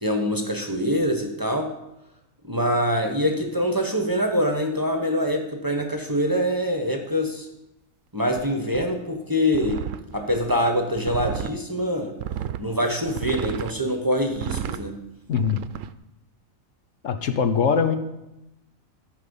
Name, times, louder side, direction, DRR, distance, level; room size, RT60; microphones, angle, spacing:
voice 1, 0.0-1.7 2.4-7.5 8.1-9.8 10.1-12.1 12.6-14.9, equal, 15° right, 3 dB, 1.1 m, -24 dB
sound 1, 8.4-8.5 8.7-8.8 9.5-11.6 12.2-12.6 13.0-13.7 14.3-14.8 15.3-15.9, right 10 dB, 75° right, 0.9 m, -32 dB
voice 2, 15.3-15.6 17.0-17.9, left 6 dB, 70° left, 8 dB, 1.2 m, -22 dB
13.5 x 5.4 x 7.1 m, 0.92 s
omnidirectional pair, 1.4 m